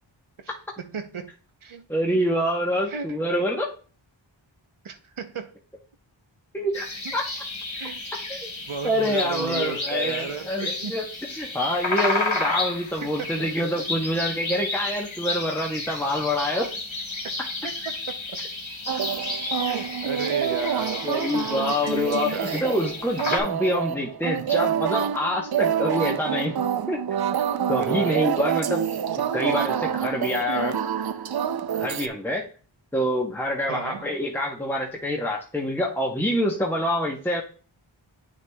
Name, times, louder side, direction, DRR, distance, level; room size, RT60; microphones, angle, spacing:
voice 1, 0.8-1.3 1.6-1.8 2.9-3.2 4.8-5.5 7.7-8.1 8.7-11.0 13.0-13.5 17.6-18.2 19.7-21.1 21.5-21.7 22.0-22.6 27.8-28.2 33.7-34.1, right 6 dB, 90° right, 0.8 m, -34 dB
voice 2, 1.9-3.7 6.5-7.2 8.3-8.5 8.8-16.7 21.0-26.6 26.9-27.0 27.7-28.8 29.3-30.8 31.7-32.4 32.9-37.4, left 1 dB, 5° left, 1.0 m, -26 dB
sound 1, 6.7-23.4, left 2 dB, 70° left, 1.8 m, -32 dB
sound 2, 18.9-32.1, right 8 dB, 55° right, 0.5 m, -27 dB
9.0 x 6.5 x 2.3 m
wide cardioid pair, 40°, 47 cm